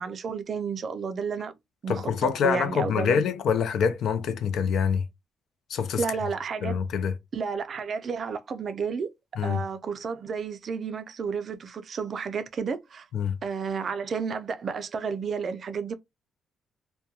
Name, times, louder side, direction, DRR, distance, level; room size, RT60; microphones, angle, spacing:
voice 1, 0.0-1.5 1.8-3.3 6.0-6.8 7.3-9.1 9.4-13.1 13.4-15.9, right 5 dB, 50° right, 0.3 m, -31 dB
voice 2, 1.9-5.1 5.7-6.0 6.6-7.1 9.4-9.6 13.1-13.4, left 7 dB, 70° left, 0.4 m, -25 dB
2.2 x 2.1 x 2.8 m
cardioid pair, 90°, 0 cm